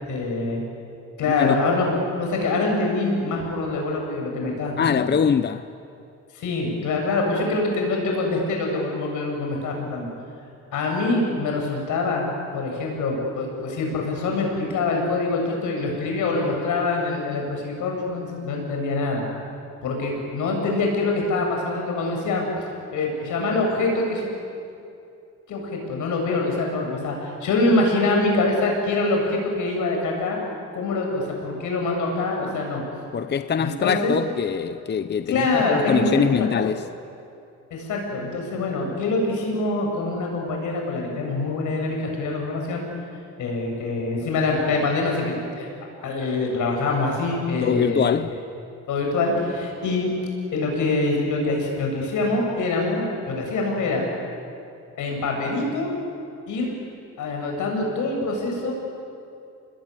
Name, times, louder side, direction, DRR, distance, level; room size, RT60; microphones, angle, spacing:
voice 1, 0.1-0.6 1.2-5.1 6.3-10.1 10.7-19.2 19.8-22.5 22.9-24.3 25.5-30.4 30.7-32.8 33.6-34.1 35.3-36.5 37.7-42.8 43.4-45.7 46.0-48.2 48.9-50.1 50.5-54.1 55.0-55.9 56.5-56.7 57.2-58.7, left 3 dB, 80° left, 7.5 m, -24 dB
voice 2, 4.8-5.7 33.1-36.9 47.6-48.4, left 7 dB, 35° left, 0.7 m, -23 dB
26.5 x 21.0 x 10.0 m
cardioid pair, 90°, 30 cm